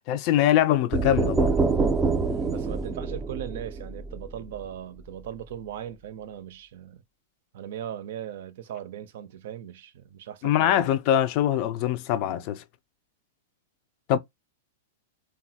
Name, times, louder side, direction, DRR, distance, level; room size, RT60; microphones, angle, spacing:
voice 1, 0.1-1.6 10.4-12.6 14.1-14.2, left 11 dB, 45° left, 0.4 m, -23 dB
sound 1, 0.9-4.7, right 4 dB, 15° right, 0.4 m, -26 dB
voice 2, 2.3-7.0 7.5-10.9, right 10 dB, 65° right, 0.5 m, -38 dB
3.0 x 2.3 x 2.7 m
hypercardioid pair, 130°, 0 cm